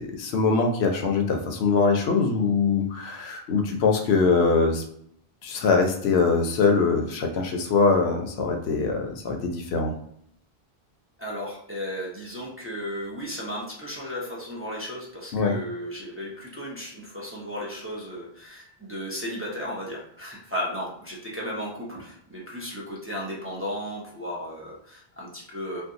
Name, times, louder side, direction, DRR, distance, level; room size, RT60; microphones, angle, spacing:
voice 1, 0.0-4.8 5.4-9.9 15.3-15.6, left 4 dB, 80° left, 3 dB, 0.8 m, -23 dB
voice 2, 11.2-25.8, equal, 15° right, -4 dB, 0.5 m, -35 dB
2.6 x 2.2 x 3.6 m, 0.67 s
omnidirectional pair, 1.0 m